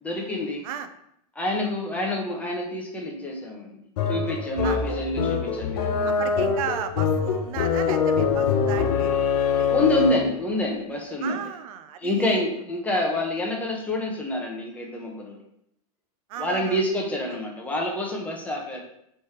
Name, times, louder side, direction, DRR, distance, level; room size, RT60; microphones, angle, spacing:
voice 1, 0.0-0.6 1.3-3.8 4.1-6.2 9.7-11.4 12.0-15.4 16.4-18.8, left 1 dB, 5° left, -1 dB, 0.8 m, -27 dB
sound 1, 4.0-10.4, left 6 dB, 75° left, 0.6 m, -24 dB
voice 2, 6.0-9.1 9.4-9.7 11.2-12.4 16.3-16.8, right 9 dB, 60° right, 10 dB, 0.5 m, -35 dB
3.3 x 3.3 x 4.2 m, 0.75 s
supercardioid pair, 135°, 20 cm